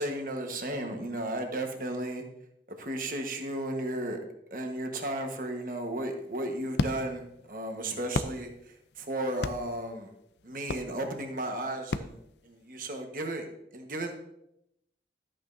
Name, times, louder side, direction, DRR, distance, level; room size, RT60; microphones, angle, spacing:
voice 1, 0.0-2.2 2.8-4.2 4.5-10.1 10.4-12.2 12.4-14.1, right 1 dB, 50° right, 4 dB, 1.3 m, -34 dB
sound 1, 6.0-13.0, left 3 dB, 75° left, 0.5 m, -37 dB
13.0 x 8.7 x 2.7 m, 0.81 s
head